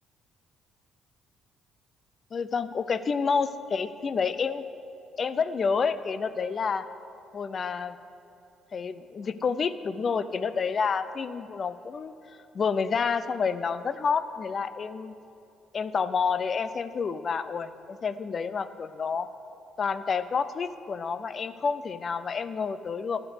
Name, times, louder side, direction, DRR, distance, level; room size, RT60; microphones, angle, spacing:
voice 1, 2.3-4.6 5.2-6.8 7.3-8.0 8.7-15.1 15.7-19.3 19.8-23.2, left 5 dB, 45° left, 14 dB, 0.5 m, -29 dB
11.5 x 5.2 x 8.0 m, 2.9 s
supercardioid pair, 75°, 0 cm